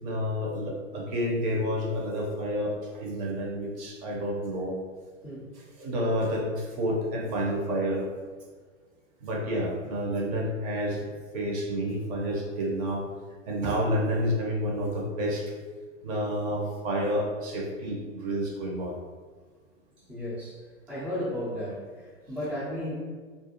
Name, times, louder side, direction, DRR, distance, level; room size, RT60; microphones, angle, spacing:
voice 1, 0.0-4.7 5.8-8.1 9.2-11.0 11.3-13.0 13.5-15.4 16.0-19.0, equal, 35° right, -2 dB, 0.7 m, -29 dB
voice 2, 20.1-20.6 20.9-22.9, left 1 dB, 5° right, -11 dB, 0.4 m, -34 dB
2.4 x 2.2 x 2.8 m, 1.5 s
figure-of-eight pair, 105°, 39 cm